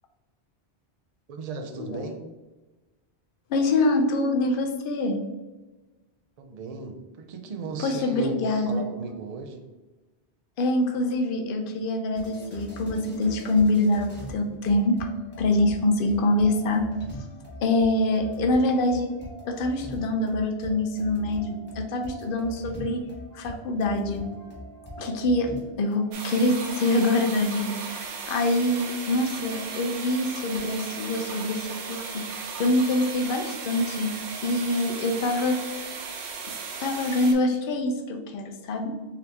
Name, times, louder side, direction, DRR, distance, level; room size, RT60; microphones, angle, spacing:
voice 1, 1.3-2.2 6.4-8.4 8.6-9.7, right 4 dB, 55° right, 6 dB, 0.4 m, -36 dB
voice 2, 3.5-5.2 7.8-8.8 10.6-15.1 15.4-16.9 17.6-19.1 19.4-23.0 23.3-24.3 25.0-34.1 34.4-35.6 36.8-39.0, left 2 dB, 60° left, 5 dB, 0.7 m, -25 dB
sound 1, 12.1-26.1, equal, 10° left, 1.0 m, -42 dB
sound 2, 26.1-37.3, right 5 dB, 85° right, 0.9 m, -36 dB
3.8 x 2.9 x 3.3 m, 1.2 s
omnidirectional pair, 1.1 m